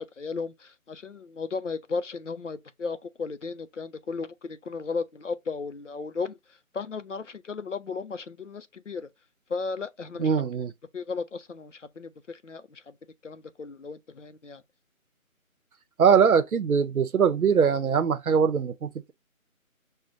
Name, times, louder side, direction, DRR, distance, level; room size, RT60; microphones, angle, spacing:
voice 1, 0.0-6.4 6.7-9.1 9.5-10.3 10.9-12.8 13.2-14.6, left 4 dB, 60° left, 0.5 m, -35 dB
voice 2, 10.2-10.7 16.0-18.9, right 6 dB, 90° right, 0.7 m, -22 dB
6.3 x 2.1 x 2.5 m
figure-of-eight pair, 180°, 42 cm